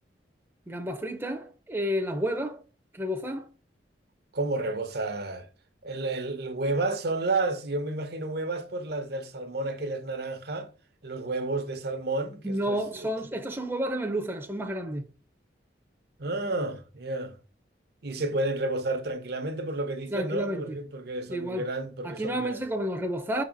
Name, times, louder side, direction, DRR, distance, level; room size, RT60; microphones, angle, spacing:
voice 1, 0.7-2.6 2.9-3.5 12.4-15.1 20.1-20.8 21.3-21.7 22.0-23.4, equal, 15° right, 0.7 m, -31 dB
voice 2, 4.3-5.5 5.8-10.7 11.0-13.1 16.2-17.4 18.0-22.6, right 2 dB, 65° right, 1.0 m, -31 dB
5.4 x 4.1 x 5.2 m
head